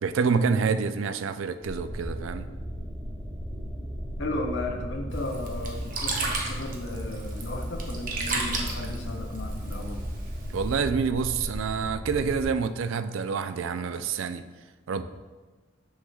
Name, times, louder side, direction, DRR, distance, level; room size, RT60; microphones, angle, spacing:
voice 1, 0.0-2.5 10.5-14.4 14.9-15.0, right 5 dB, 90° right, 11 dB, 0.4 m, -27 dB
sound 1, 1.6-12.4, equal, 5° left, 1.4 m, -36 dB
voice 2, 4.2-10.0, left 2 dB, 70° left, 1 dB, 0.6 m, -35 dB
Sink (filling or washing), 5.1-10.8, right 3 dB, 45° right, 0.7 m, -34 dB
6.4 x 6.3 x 2.3 m, 1.3 s
head